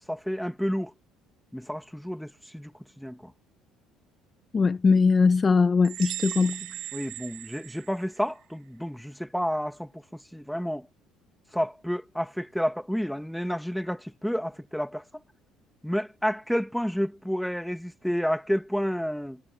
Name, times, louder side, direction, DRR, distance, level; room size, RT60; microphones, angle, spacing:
voice 1, 0.1-0.9 1.5-3.3 6.9-10.9 11.5-15.2 15.8-19.4, equal, ahead, 1.2 m, -30 dB
voice 2, 4.5-6.7, left 4 dB, 25° left, 0.7 m, -21 dB
sound 1, 5.8-8.4, right 16 dB, 75° right, 3.6 m, -38 dB
cardioid pair, 145°, 0 cm